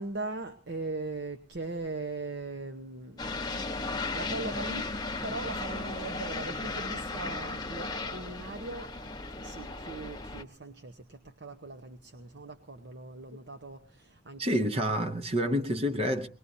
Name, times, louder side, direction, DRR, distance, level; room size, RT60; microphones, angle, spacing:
voice 1, 0.0-3.3 3.6-4.9 5.2-8.9 9.4-14.7, right 3 dB, 65° right, 0.9 m, -40 dB
sound 1, 3.2-10.4, left 3 dB, 20° left, 1.0 m, -36 dB
voice 2, 14.4-16.3, equal, 30° right, 0.8 m, -28 dB
23.0 x 20.0 x 2.7 m
head